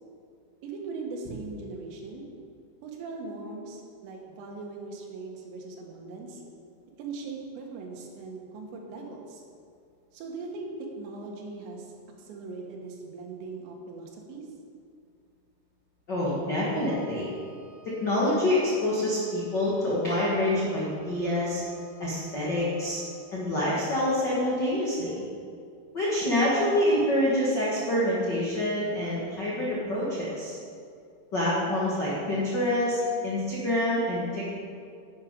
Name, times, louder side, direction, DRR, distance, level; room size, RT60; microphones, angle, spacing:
voice 1, 0.6-2.2 2.8-6.4 7.0-9.4 10.1-11.9 12.2-14.5, right 3 dB, 80° right, 1 dB, 3.6 m, -40 dB
voice 2, 16.1-17.3 17.8-21.6 22.0-23.0 23.3-25.2 25.9-30.6 31.3-34.5, left 1 dB, 75° left, -7 dB, 1.0 m, -26 dB
Wind instrument woodwind instrument, 16.7-23.4, right 1 dB, 35° left, 3.4 m, -53 dB
11.0 x 9.0 x 5.2 m, 2.4 s
omnidirectional pair, 5.1 m